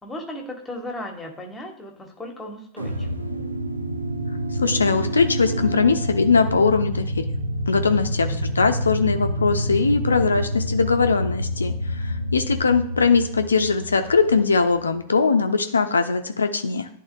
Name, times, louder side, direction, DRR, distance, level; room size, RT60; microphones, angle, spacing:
voice 1, 0.0-3.1 8.1-8.4, left 1 dB, 10° left, 1 dB, 1.5 m, -36 dB
sound 1, 2.8-15.0, equal, 80° right, 0.5 m, -28 dB
voice 2, 4.6-7.1 7.7-16.9, left 4 dB, 75° left, 8 dB, 0.5 m, -21 dB
11.0 x 3.7 x 2.5 m, 0.72 s
figure-of-eight pair, 90°, 0 cm